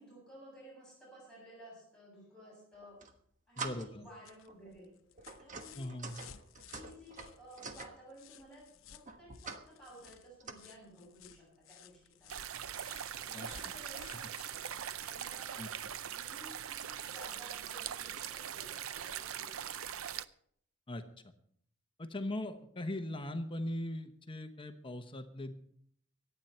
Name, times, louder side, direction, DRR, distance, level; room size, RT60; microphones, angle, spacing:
voice 1, 0.0-3.0 3.5-4.9 5.4-6.0 6.7-12.3 13.1-14.6 15.0-15.6 16.1-19.9, right 1 dB, 5° left, -6 dB, 7.5 m, -55 dB
sound 1, 2.7-3.1 3.6-4.1 4.5-4.7 5.2-7.9 9.1-9.7 10.0-10.5, right 4 dB, 35° right, 1.3 m, -45 dB
voice 2, 3.6-4.0 5.7-6.2 13.3-13.7 15.6-15.7 20.9-21.0 22.0-25.5, left 1 dB, 25° left, 7 dB, 1.0 m, -40 dB
sound 2, 3.9-15.9 17.2-17.3, left 9 dB, 70° left, 0.8 m, -58 dB
sound 3, 12.3-20.3, right 9 dB, 80° right, 0.6 m, -41 dB
24.0 x 9.2 x 4.4 m, 0.65 s
head